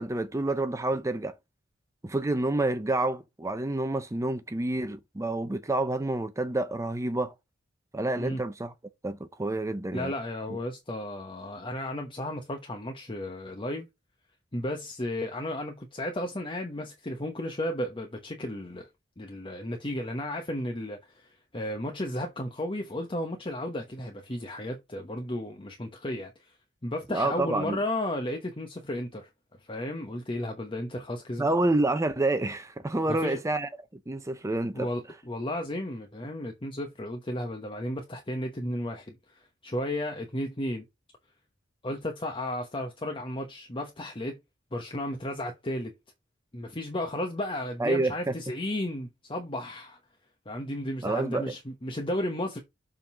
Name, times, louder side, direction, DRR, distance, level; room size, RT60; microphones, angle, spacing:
voice 1, 0.0-1.3 2.0-7.3 7.9-8.7 9.0-10.1 10.5-10.6 27.1-27.8 31.4-33.7 34.1-34.9 47.8-48.3 51.0-51.5, right 2 dB, 15° right, 0.5 m, -28 dB
voice 2, 9.9-13.9 14.5-18.9 19.2-26.5 26.8-29.3 29.7-31.5 33.1-33.4 34.7-40.8 41.8-44.4 44.7-45.9 46.5-50.0 50.5-52.6, left 1 dB, 25° left, 1.1 m, -34 dB
7.2 x 3.8 x 5.5 m
head